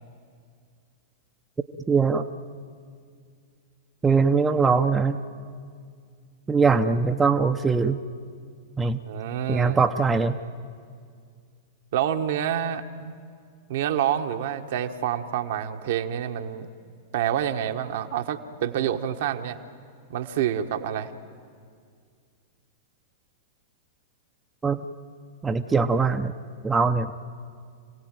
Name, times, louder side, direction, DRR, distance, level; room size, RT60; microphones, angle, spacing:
voice 1, 1.9-2.2 4.0-5.2 6.5-8.0 8.8-9.0 9.5-10.4 24.6-24.8 25.4-26.4 26.6-27.1, right 4 dB, 15° right, 7 dB, 0.8 m, -21 dB
voice 2, 9.1-9.8 11.9-13.2 13.7-16.7 17.1-19.6 20.1-21.1, right 10 dB, 60° right, 6 dB, 1.4 m, -27 dB
27.0 x 17.0 x 9.1 m, 2.2 s
hypercardioid pair, 100°, 0 cm